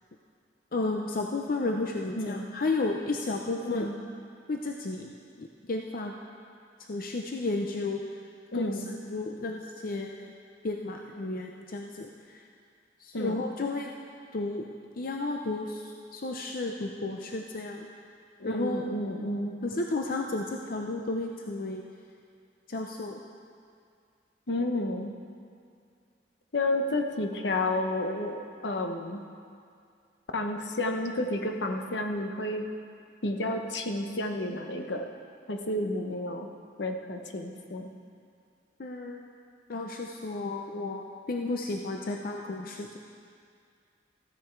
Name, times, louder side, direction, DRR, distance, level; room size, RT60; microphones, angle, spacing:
voice 1, 0.7-3.9 4.5-5.1 5.4-6.1 6.9-8.0 8.5-8.7 9.1-10.3 10.6-12.4 13.0-13.9 14.3-14.6 15.0-17.9 18.4-18.8 19.6-21.8 22.7-23.2 38.8-39.3 39.7-43.0, left 2 dB, 55° left, 2 dB, 0.6 m, -32 dB
voice 2, 3.6-4.0 8.5-8.9 13.1-13.4 18.4-19.5 24.5-25.1 26.5-29.2 30.3-32.6 33.2-35.0 35.5-36.5 36.8-37.9, left 1 dB, 75° left, 4 dB, 0.9 m, -31 dB
14.0 x 9.6 x 4.6 m, 2.3 s
head